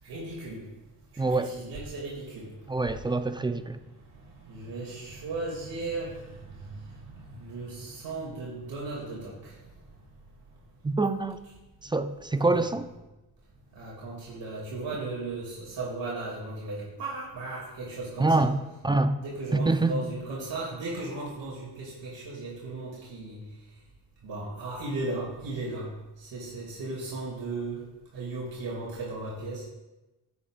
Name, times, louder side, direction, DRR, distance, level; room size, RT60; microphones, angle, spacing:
voice 1, 0.0-0.6 1.3-2.5 2.9-3.0 4.4-9.5 12.4-12.7 13.7-18.5 19.2-23.4 24.2-25.9 26.2-27.9 28.1-29.6, right 2 dB, 75° right, 2.6 m, -36 dB
voice 2, 1.2-1.5 2.7-3.8 10.8-11.4 11.8-12.8 18.2-18.5 18.8-19.1 19.5-20.1, right 3 dB, 10° right, 0.3 m, -25 dB
11.0 x 8.4 x 2.5 m
cardioid pair, 100°, 43 cm